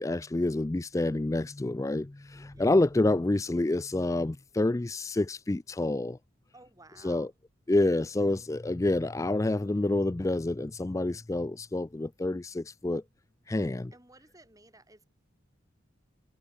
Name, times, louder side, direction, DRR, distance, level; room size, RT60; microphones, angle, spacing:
voice 1, 0.0-6.2 7.0-7.3 7.7-13.0 13.5-13.9, left 2 dB, 15° left, 0.3 m, -28 dB
sound 1, 2.0-3.9, right 1 dB, 70° right, 3.8 m, -61 dB
voice 2, 6.5-7.3 13.9-15.1, right 2 dB, 15° right, 4.3 m, -55 dB
head